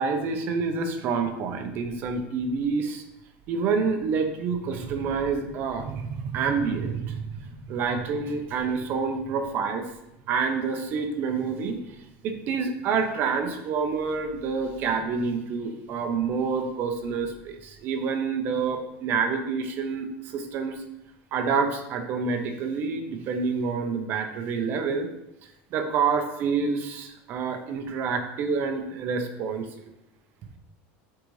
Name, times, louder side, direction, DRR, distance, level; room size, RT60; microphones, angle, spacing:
voice 1, 0.0-3.0 3.5-9.8 10.3-11.8 12.2-20.8 21.3-25.1 25.7-29.7, right 5 dB, 35° right, 5 dB, 0.8 m, -28 dB
8.3 x 4.0 x 3.2 m, 0.86 s
cardioid pair, 175°, 6 cm